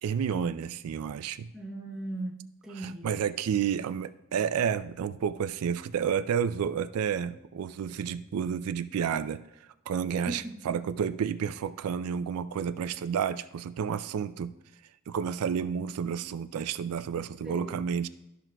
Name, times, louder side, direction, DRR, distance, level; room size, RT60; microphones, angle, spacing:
voice 1, 0.0-1.5 2.8-9.4 9.9-14.5 15.1-18.1, right 7 dB, 85° right, 13 dB, 0.3 m, -30 dB
voice 2, 1.5-3.2 10.3-10.7 17.4-17.8, right 1 dB, 5° right, -2 dB, 0.7 m, -38 dB
13.0 x 6.0 x 2.2 m, 0.87 s
head